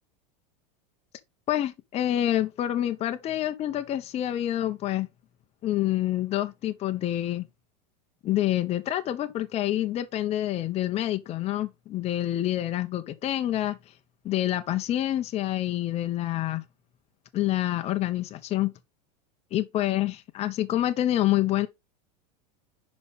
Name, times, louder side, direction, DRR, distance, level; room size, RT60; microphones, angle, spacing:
voice 1, 1.5-5.1 5.6-7.5 8.2-13.8 14.2-16.6 17.3-18.7 19.5-21.7, left 13 dB, 30° left, 0.7 m, -27 dB
5.3 x 5.2 x 4.1 m
supercardioid pair, 130°, 21 cm